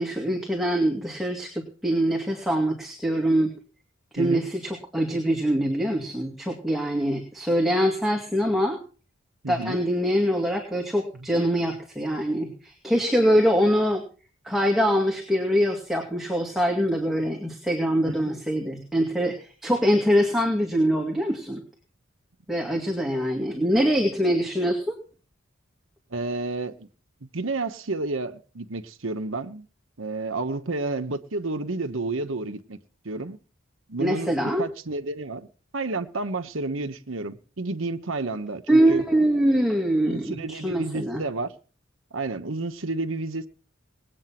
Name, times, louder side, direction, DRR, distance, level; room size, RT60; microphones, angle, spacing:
voice 1, 0.0-3.5 4.1-8.8 9.5-14.0 14.4-21.6 22.5-25.0 34.0-34.7 38.7-41.2, equal, ahead, 2.3 m, -24 dB
voice 2, 9.4-9.8 11.1-11.3 18.1-18.2 26.1-26.9 27.2-29.7 30.0-32.8 33.0-33.4 33.9-35.5 35.7-39.0 40.0-41.5 42.1-43.5, right 3 dB, 75° right, 1.1 m, -31 dB
19.5 x 8.7 x 5.9 m
head